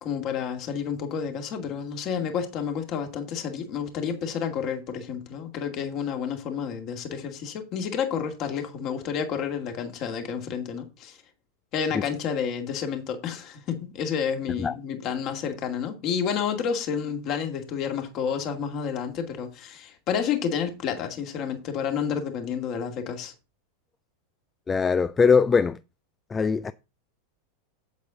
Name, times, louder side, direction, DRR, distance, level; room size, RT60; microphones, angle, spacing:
voice 1, 0.0-11.2 11.7-23.3, left 7 dB, 40° left, 2.3 m, -30 dB
voice 2, 24.7-25.8 26.3-26.7, left 5 dB, 20° left, 0.4 m, -21 dB
8.3 x 8.3 x 3.8 m
figure-of-eight pair, 90°, 0 cm